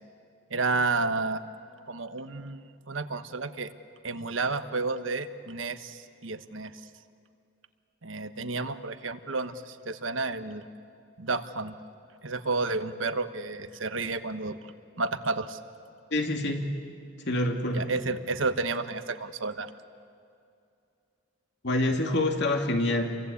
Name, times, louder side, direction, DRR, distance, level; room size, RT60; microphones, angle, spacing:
voice 1, 0.5-1.4 1.9-3.7 4.0-6.7 8.0-10.6 11.2-11.7 12.2-14.7 15.0-15.6 17.7-19.7, right 3 dB, 80° right, 10 dB, 1.2 m, -31 dB
voice 2, 16.1-16.7 17.2-17.9 21.6-23.2, left 1 dB, 60° left, 3 dB, 2.6 m, -26 dB
29.0 x 23.5 x 8.5 m, 2.5 s
head